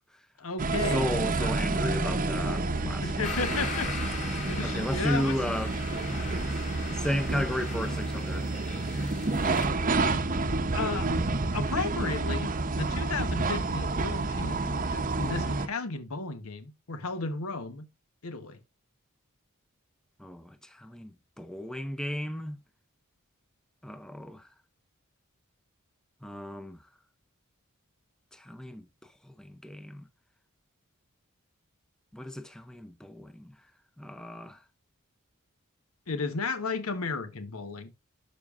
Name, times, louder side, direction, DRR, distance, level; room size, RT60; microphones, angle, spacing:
voice 1, 0.4-1.1 1.4-1.5 2.8-3.9 4.5-5.4 10.7-11.1 11.5-17.9 18.2-18.6 36.1-37.9, left 4 dB, 80° left, 1.1 m, -34 dB
sound 1, 0.6-15.7, right 3 dB, 40° right, 0.8 m, -29 dB
voice 2, 0.9-3.1 4.6-5.7 6.3-6.7 7.0-8.5 20.2-21.1 21.4-22.6 23.8-24.4 26.2-26.8 28.4-28.9 29.4-30.0 32.1-33.5 34.0-34.6, equal, 5° left, 0.5 m, -34 dB
sound 2, 3.2-9.7, left 3 dB, 35° left, 2.1 m, -39 dB
12.0 x 5.2 x 2.4 m
head